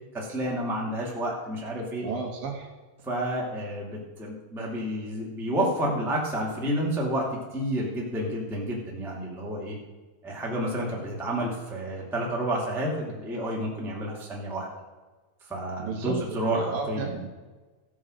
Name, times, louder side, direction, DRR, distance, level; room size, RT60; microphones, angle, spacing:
voice 1, 0.1-2.0 3.0-7.3 7.5-9.7 10.2-14.7 15.5-17.0, right 1 dB, 5° right, -3 dB, 0.3 m, -30 dB
voice 2, 2.0-2.7 15.8-16.2 16.5-17.3, right 5 dB, 60° right, 1 dB, 2.8 m, -32 dB
15.5 x 5.7 x 6.4 m, 1.3 s
omnidirectional pair, 5.1 m